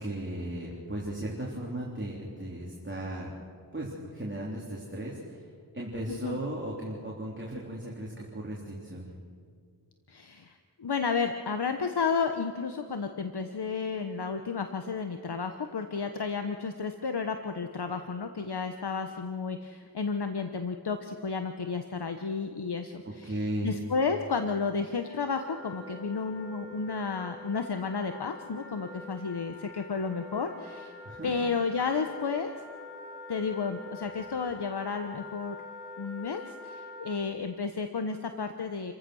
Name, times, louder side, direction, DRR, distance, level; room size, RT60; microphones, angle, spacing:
voice 1, 0.0-3.3 3.7-5.4 5.7-9.1 23.0-23.7 31.0-31.3, right 1 dB, 25° right, -4 dB, 3.6 m, -36 dB
voice 2, 6.1-6.4 10.1-30.9 31.2-32.5 33.3-35.6 36.0-38.9, left 5 dB, 65° left, 7 dB, 1.2 m, -32 dB
Wind instrument woodwind instrument, 25.0-37.2, left 2 dB, 35° left, 6.6 m, -46 dB
28.5 x 15.0 x 6.4 m, 2.2 s
wide cardioid pair, 75°, 42 cm